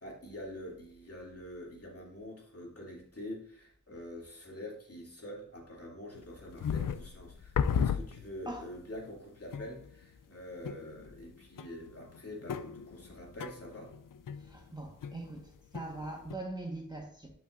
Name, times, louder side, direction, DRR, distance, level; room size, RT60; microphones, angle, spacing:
voice 1, 0.0-13.9, left 1 dB, 50° left, 2.7 m, -46 dB
sound 1, 6.1-8.7 9.0-9.1 9.5-10.0 10.6-11.3 11.6-15.4 15.7-16.3, left 7 dB, 85° left, 0.5 m, -35 dB
voice 2, 14.4-17.3, right 2 dB, 15° right, 1.4 m, -42 dB
11.0 x 5.8 x 2.6 m
wide cardioid pair, 70°, 31 cm